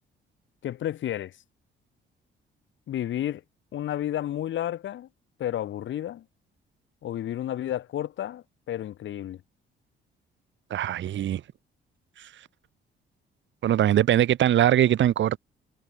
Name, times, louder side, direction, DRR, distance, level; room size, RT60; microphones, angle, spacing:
voice 1, 0.6-1.4 2.9-3.4 3.7-5.1 5.4-6.2 7.0-9.4, left 11 dB, 75° left, 4.2 m, -31 dB
voice 2, 10.7-11.4 12.2-12.3 13.6-15.4, right 11 dB, 70° right, 2.2 m, -22 dB
cardioid pair, 90°, 20 cm